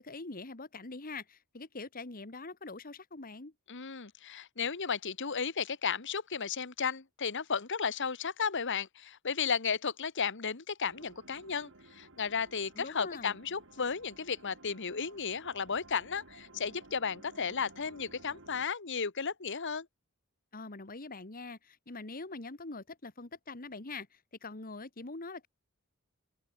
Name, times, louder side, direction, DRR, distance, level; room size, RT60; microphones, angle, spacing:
voice 1, 0.0-3.5 12.7-13.4 20.5-25.5, left 3 dB, 40° left, 1.6 m, -44 dB
voice 2, 3.7-19.9, left 6 dB, 55° left, 1.4 m, -34 dB
sound 1, 10.8-18.7, right 2 dB, 60° right, 4.1 m, -56 dB
open air
head